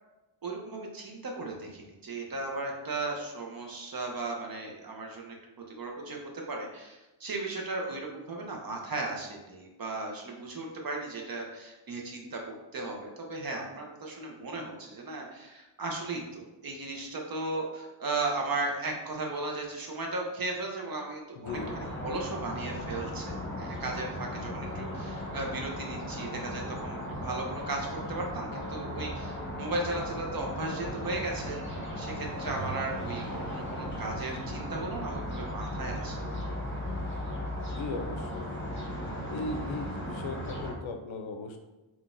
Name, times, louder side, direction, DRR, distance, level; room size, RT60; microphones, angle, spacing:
voice 1, 0.4-5.4 5.7-36.1 36.4-36.5, right 2 dB, 50° right, 0 dB, 0.7 m, -36 dB
voice 2, 21.3-21.8 37.7-38.6 39.3-41.6, left 3 dB, 75° left, 6 dB, 0.5 m, -37 dB
sound 1, 21.4-40.7, equal, 25° left, 0.8 m, -36 dB
3.7 x 2.3 x 2.5 m, 1.1 s
wide cardioid pair, 80°, 47 cm